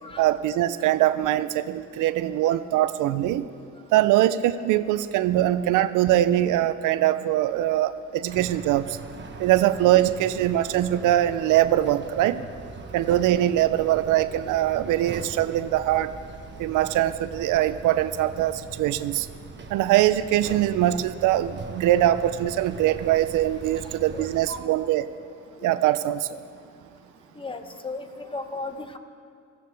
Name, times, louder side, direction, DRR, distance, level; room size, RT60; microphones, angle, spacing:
voice 1, 0.2-3.4 3.9-9.0 9.4-12.4 12.9-16.2 16.6-19.3 19.7-25.1 25.6-26.4, right 13 dB, 90° right, 13 dB, 0.5 m, -22 dB
sound 1, 8.3-24.6, right 4 dB, 35° right, 1.2 m, -41 dB
voice 2, 23.8-24.7 27.4-29.0, left 3 dB, 15° left, 7 dB, 1.0 m, -36 dB
17.0 x 14.5 x 3.4 m, 2.2 s
cardioid pair, 90°, 30 cm